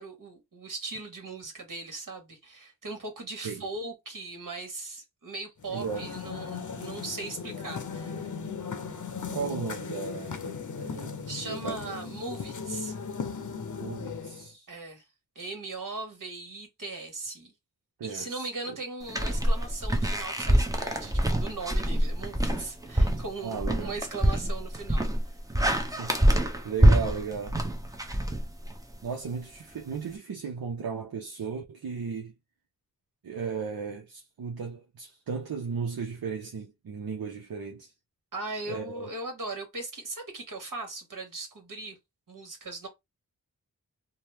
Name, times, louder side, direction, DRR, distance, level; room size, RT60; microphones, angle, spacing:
voice 1, 0.0-8.3 10.9-12.9 14.7-15.1 15.3-17.5 18.0-25.1 38.3-42.0 42.3-42.9, right 3 dB, 65° right, 1.4 m, -39 dB
sound 1, 5.6-14.5, left 5 dB, 60° left, 0.7 m, -37 dB
voice 2, 5.7-6.4 9.3-12.0 13.8-14.7 18.0-18.8 23.4-23.9 25.7-26.4 26.6-27.6 29.0-32.3 33.2-37.9 38.7-39.1, right 6 dB, 85° right, 0.6 m, -36 dB
sound 2, 19.1-28.9, right 1 dB, 10° right, 0.6 m, -25 dB
2.8 x 2.1 x 3.3 m
wide cardioid pair, 50°, 35 cm